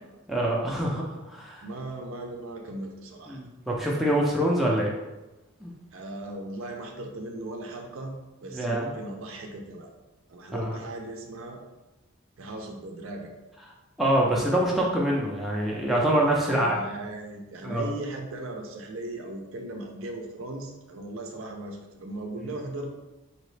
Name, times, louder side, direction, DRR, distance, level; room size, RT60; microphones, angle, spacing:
voice 1, 0.3-1.6 3.3-4.9 5.6-5.7 8.5-8.9 10.5-10.8 14.0-16.8 17.6-17.9, right 1 dB, ahead, -4 dB, 0.4 m, -25 dB
voice 2, 1.6-3.4 5.9-8.1 8.4-9.9 10.3-11.6 12.4-13.3 16.5-22.9, right 2 dB, 65° right, 3 dB, 0.5 m, -38 dB
3.8 x 3.0 x 3.2 m, 1.1 s
head